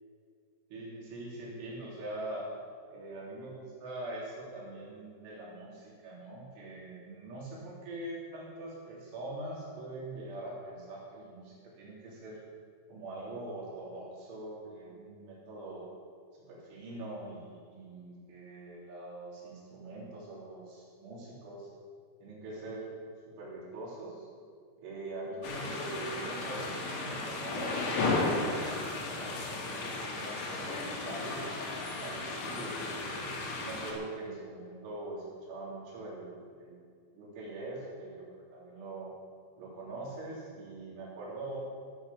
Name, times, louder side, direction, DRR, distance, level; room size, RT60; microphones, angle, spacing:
voice 1, 0.7-2.5 2.9-12.4 12.9-15.9 16.4-21.7 22.2-22.9 23.4-24.3 24.8-33.0 33.6-39.1 39.6-41.6, right 2 dB, 85° right, -6 dB, 5.9 m, -43 dB
sound 1, 25.4-33.9, left 3 dB, 80° left, 4.5 m, -34 dB
15.5 x 8.3 x 7.1 m, 2.1 s
omnidirectional pair, 5.4 m